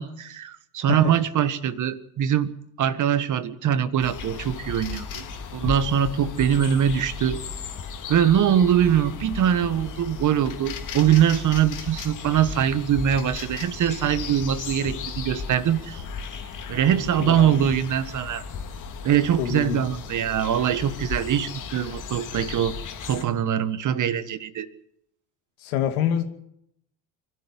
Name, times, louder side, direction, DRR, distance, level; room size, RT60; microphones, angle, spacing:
voice 1, 0.0-2.5 2.8-5.3 5.5-7.4 8.1-16.0 16.7-18.4 19.0-22.8 23.1-24.7, right 9 dB, 45° right, 13 dB, 1.6 m, -22 dB
sound 1, 4.0-23.2, left 5 dB, 45° left, 2.8 m, -36 dB
voice 2, 17.2-17.8 19.4-19.8 25.6-26.2, left 9 dB, 80° left, 7 dB, 2.5 m, -26 dB
23.5 x 12.5 x 9.8 m, 0.76 s
supercardioid pair, 85°, 42 cm